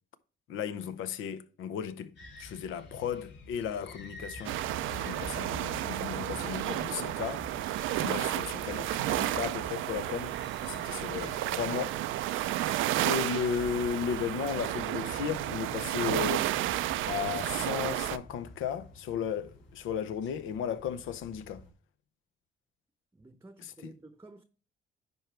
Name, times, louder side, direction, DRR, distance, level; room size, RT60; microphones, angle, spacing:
voice 1, 0.5-4.6 4.9-7.5 7.9-12.0 13.0-16.5 17.1-21.6 23.6-23.9, left 7 dB, 85° left, 0.8 m, -35 dB
sound 1, 2.2-21.7, left 2 dB, 65° left, 2.8 m, -49 dB
sound 2, 4.4-18.2, right 14 dB, 85° right, 0.5 m, -32 dB
voice 2, 23.1-24.4, right 2 dB, 15° right, 0.8 m, -52 dB
9.9 x 4.7 x 3.3 m
cardioid pair, 90°, 20 cm